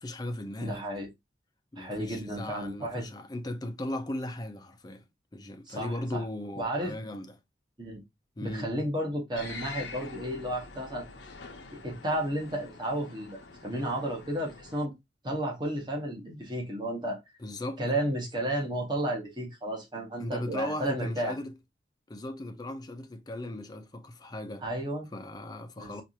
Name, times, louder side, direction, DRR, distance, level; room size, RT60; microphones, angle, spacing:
voice 1, 0.0-0.9 1.7-5.0 5.3-7.4 8.4-8.7 17.4-17.8 20.2-21.5 22.1-24.6 25.1-26.0, left 1 dB, 20° left, 0.5 m, -37 dB
voice 2, 0.6-1.1 1.8-3.1 5.7-6.2 6.5-6.9 7.8-8.0 8.4-11.0 11.7-14.9 15.2-17.2 17.8-21.3 24.6-25.1 25.8-26.0, right 1 dB, 25° right, 1.2 m, -32 dB
sound 1, 9.4-14.9, left 4 dB, 90° left, 0.7 m, -45 dB
4.6 x 2.5 x 2.8 m
head